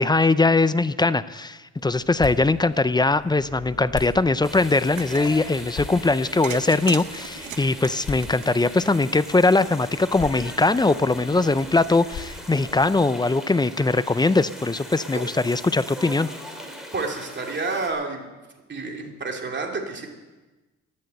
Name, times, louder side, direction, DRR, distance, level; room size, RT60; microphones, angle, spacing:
voice 1, 0.0-16.3, left 3 dB, 15° left, 15 dB, 0.5 m, -21 dB
sound 1, 1.7-12.9, left 5 dB, 60° left, 2.7 m, -41 dB
sound 2, 4.4-17.9, equal, ahead, 3.7 m, -39 dB
sound 3, 4.8-5.3 6.4-8.9, right 10 dB, 80° right, 1.0 m, -36 dB
voice 2, 16.9-18.3 18.7-20.1, right 3 dB, 35° right, 2 dB, 2.9 m, -29 dB
13.5 x 10.5 x 7.8 m, 1.2 s
cardioid pair, 90°, 30 cm